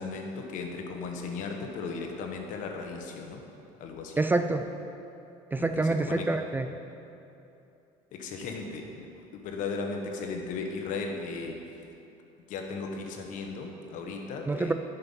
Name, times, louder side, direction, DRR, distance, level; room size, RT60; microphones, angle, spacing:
voice 1, 0.0-3.4 3.8-4.2 5.6-6.3 8.1-11.6 12.5-14.7, left 4 dB, 65° left, 2 dB, 1.3 m, -36 dB
voice 2, 4.2-4.7 5.5-6.7 14.5-14.7, right 2 dB, 15° right, 8 dB, 0.3 m, -26 dB
10.5 x 5.7 x 5.4 m, 2.8 s
cardioid pair, 110°, 14 cm